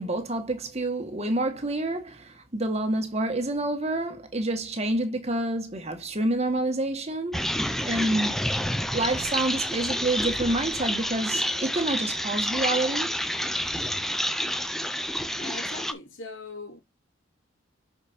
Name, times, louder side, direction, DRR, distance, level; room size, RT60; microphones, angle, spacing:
voice 1, 0.0-8.4 8.9-13.1, right 2 dB, 35° right, 1.8 m, -28 dB
sound 1, 7.3-15.9, equal, ahead, 0.6 m, -29 dB
voice 2, 15.4-16.8, left 3 dB, 75° left, 2.7 m, -40 dB
6.7 x 5.2 x 4.4 m
head